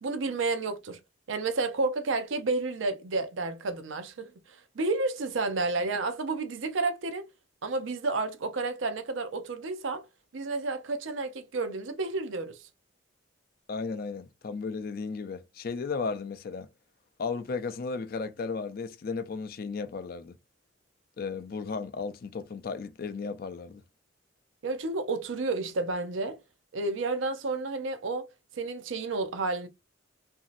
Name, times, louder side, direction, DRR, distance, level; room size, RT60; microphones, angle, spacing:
voice 1, 0.0-1.0 1.3-7.3 7.6-10.1 10.3-12.7 24.6-26.4 26.7-28.3 28.6-29.7, right 3 dB, 75° right, 0.5 m, -31 dB
voice 2, 13.7-16.7 17.2-20.4 21.2-23.8, left 4 dB, 50° left, 0.4 m, -35 dB
3.0 x 2.6 x 2.5 m
head